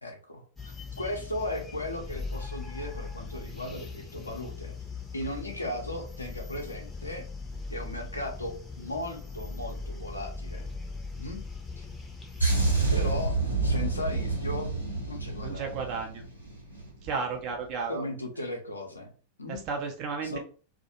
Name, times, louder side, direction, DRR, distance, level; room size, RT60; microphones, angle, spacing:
voice 1, 0.0-4.7 5.1-7.3 7.7-10.7 11.2-11.4 11.8-11.9 12.9-14.7 15.1-15.7 17.9-19.1 19.4-19.6 20.2-20.4, left 1 dB, 80° left, 2 dB, 0.5 m, -36 dB
sound 1, 0.6-12.4, left 4 dB, 10° left, 0.6 m, -40 dB
sound 2, 12.4-17.0 17.2-17.5, right 3 dB, 85° right, 0.7 m, -28 dB
voice 2, 15.4-16.2 17.0-18.0 19.5-20.4, right 5 dB, 40° right, 3 dB, 0.5 m, -33 dB
2.3 x 2.1 x 2.8 m, 0.39 s
figure-of-eight pair, 90°, 0 cm